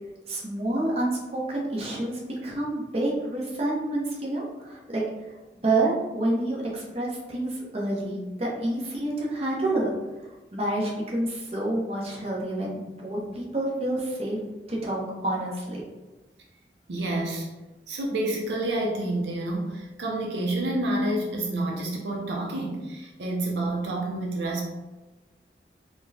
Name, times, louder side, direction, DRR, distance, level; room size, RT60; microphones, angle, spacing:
voice 1, 0.3-5.0 5.6-9.9 10.5-14.4 14.7-15.8, right 1 dB, 35° right, -4 dB, 0.8 m, -28 dB
voice 2, 16.9-17.5 17.9-24.6, right 1 dB, 80° right, -1 dB, 0.5 m, -29 dB
4.2 x 2.1 x 2.7 m, 1.1 s
head